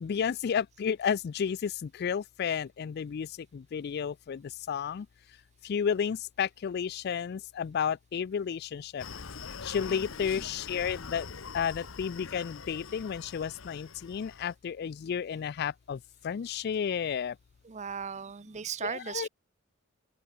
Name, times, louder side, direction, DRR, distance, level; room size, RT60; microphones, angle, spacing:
voice 1, 0.0-5.1 5.6-9.0 9.6-11.3 11.5-17.4 18.8-19.3, left 7 dB, 50° left, 0.3 m, -32 dB
Screaming, 9.0-14.5, left 5 dB, 65° left, 1.0 m, -43 dB
voice 2, 17.6-19.3, right 7 dB, 35° right, 0.6 m, -37 dB
open air
head